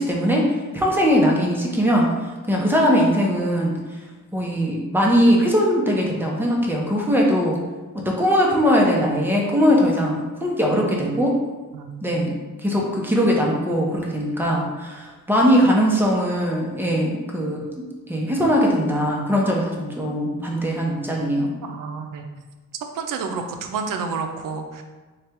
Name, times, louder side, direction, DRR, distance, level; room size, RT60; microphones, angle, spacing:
voice 1, 0.0-2.1 2.5-3.8 4.3-7.6 8.0-11.4 12.0-17.7 18.1-21.5, equal, 5° right, -2 dB, 0.7 m, -20 dB
voice 2, 11.7-12.3 21.6-22.3 22.9-24.8, right 5 dB, 90° right, 5 dB, 0.5 m, -30 dB
3.2 x 2.3 x 4.3 m, 1.3 s
cardioid pair, 100°, 32 cm